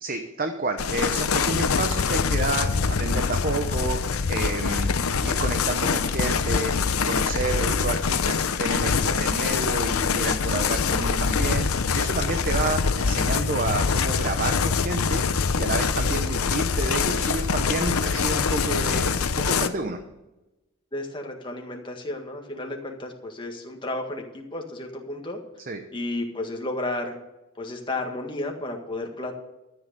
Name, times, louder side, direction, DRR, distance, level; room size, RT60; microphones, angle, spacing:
voice 1, 0.0-4.0 4.3-4.9 5.2-6.7 7.0-15.2 15.6-20.0 25.7-25.8, right 3 dB, 40° right, 6 dB, 0.9 m, -30 dB
sound 1, 0.8-19.7, left 5 dB, 85° left, 0.8 m, -24 dB
voice 2, 20.9-25.4 25.9-27.1 27.6-29.3, left 2 dB, 20° left, 2 dB, 1.7 m, -32 dB
13.0 x 8.0 x 6.8 m, 0.99 s
head